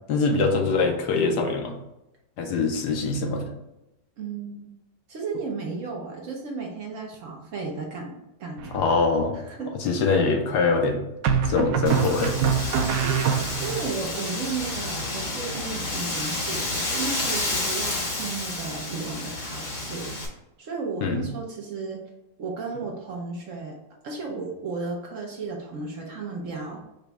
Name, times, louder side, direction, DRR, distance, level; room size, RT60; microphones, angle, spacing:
voice 1, 0.1-1.7 2.4-3.5 8.7-9.3 9.8-11.0 11.4-12.4 12.7-12.9 21.0-21.2, left 4 dB, 70° left, 3 dB, 1.2 m, -23 dB
voice 2, 4.2-4.7 5.1-9.0 9.3-9.7 13.0-13.3 13.6-20.1 20.6-22.0 22.4-23.8 24.0-26.8, right 4 dB, 60° right, 0 dB, 0.9 m, -34 dB
sound 1, 8.6-9.1 11.2-13.9, right 7 dB, 80° right, 1.2 m, -25 dB
Wind, 11.9-20.3, left 2 dB, 35° left, 0.8 m, -30 dB
5.0 x 2.2 x 4.6 m, 0.92 s
omnidirectional pair, 1.9 m